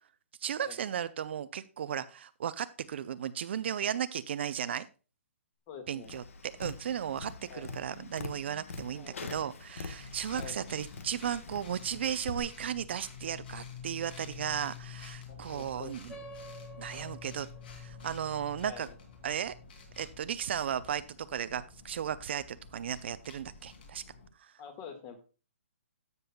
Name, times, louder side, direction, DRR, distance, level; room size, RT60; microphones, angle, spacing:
voice 1, 0.4-4.9 5.9-16.1 16.8-17.5 17.8-18.9 19.2-19.5 20.0-24.0 24.4-24.5, right 9 dB, 50° right, 14 dB, 0.5 m, -35 dB
voice 2, 5.7-6.1 7.5-7.9 8.9-9.3 10.3-10.6 15.3-16.2 18.6-19.0 24.6-25.2, left 6 dB, 25° left, 7 dB, 1.7 m, -47 dB
Tap, 6.0-12.4, left 4 dB, 65° left, 1.2 m, -44 dB
sound 1, 9.9-24.3, left 6 dB, 45° left, 2.5 m, -49 dB
sound 2, 16.1-21.0, right 3 dB, 10° left, 0.9 m, -52 dB
13.5 x 6.8 x 2.3 m, 0.34 s
hypercardioid pair, 160°, 8 cm